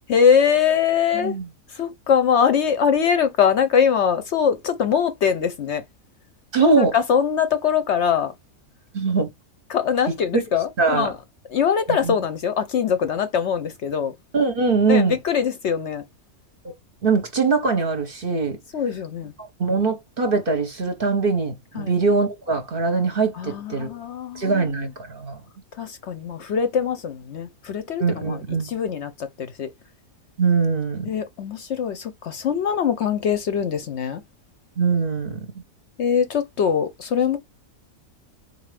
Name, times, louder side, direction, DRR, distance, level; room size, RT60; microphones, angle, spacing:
voice 1, 0.1-1.4 1.7-5.9 6.6-8.3 9.7-11.1 11.5-14.1 14.9-16.0 18.7-19.3 21.7-21.9 23.3-24.9 25.8-29.7 31.0-34.2 36.0-37.4, left 7 dB, 65° left, 0.8 m, -22 dB
voice 2, 1.1-1.5 6.5-6.9 8.9-9.3 10.8-11.1 11.9-12.1 14.3-15.1 16.6-16.7 17.0-18.6 19.6-23.9 24.3-25.4 28.0-28.7 30.4-31.1 34.8-35.4, right 4 dB, 50° right, 0.8 m, -22 dB
4.1 x 2.4 x 3.2 m
omnidirectional pair, 1.5 m